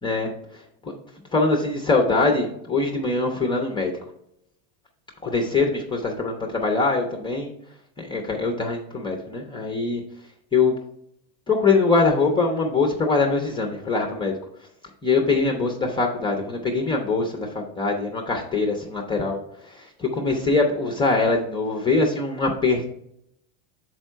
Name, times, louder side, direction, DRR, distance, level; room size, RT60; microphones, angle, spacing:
voice 1, 1.3-3.9 5.2-7.5 8.0-10.0 10.5-10.7 11.5-14.3 15.0-19.4 19.8-22.9, left 3 dB, 10° left, 3 dB, 0.4 m, -23 dB
6.3 x 4.5 x 4.4 m, 0.76 s
supercardioid pair, 145°, 44 cm